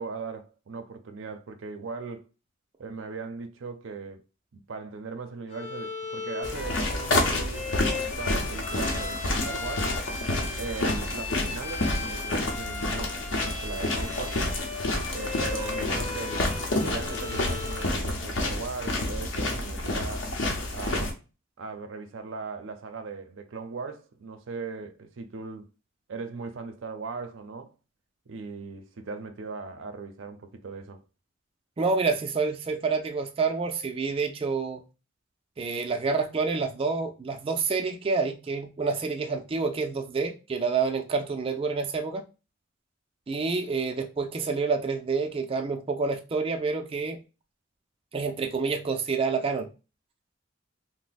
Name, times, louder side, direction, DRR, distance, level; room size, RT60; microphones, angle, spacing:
voice 1, 0.0-2.3 2.8-4.2 4.5-9.9 10.6-14.4 15.1-20.3 20.7-21.2 21.6-25.7 26.1-27.7 28.3-31.0, right 4 dB, 90° right, 0.5 m, -39 dB
Bowed string instrument, 5.5-18.0, left 4 dB, 35° left, 0.5 m, -37 dB
sound 1, 6.4-21.1, left 2 dB, 70° left, 0.8 m, -29 dB
voice 2, 31.8-34.8 35.6-42.2 43.3-47.2 48.1-49.7, right 4 dB, 30° right, 0.4 m, -28 dB
2.7 x 2.1 x 3.9 m
head